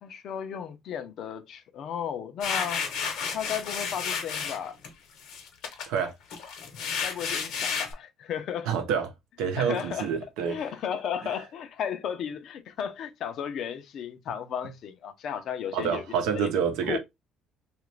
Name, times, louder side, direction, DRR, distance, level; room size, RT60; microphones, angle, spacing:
voice 1, 0.0-2.8 3.3-4.8 7.0-8.7 9.6-10.1 10.5-16.5 16.9-17.0, left 8 dB, 60° left, 0.5 m, -34 dB
sound 1, 2.4-4.9 5.2-7.9, left 6 dB, 75° left, 1.0 m, -32 dB
voice 2, 8.6-9.1 9.4-10.6 15.7-17.0, right 7 dB, 90° right, 0.7 m, -27 dB
2.9 x 2.4 x 3.2 m
cardioid pair, 110°, 0 cm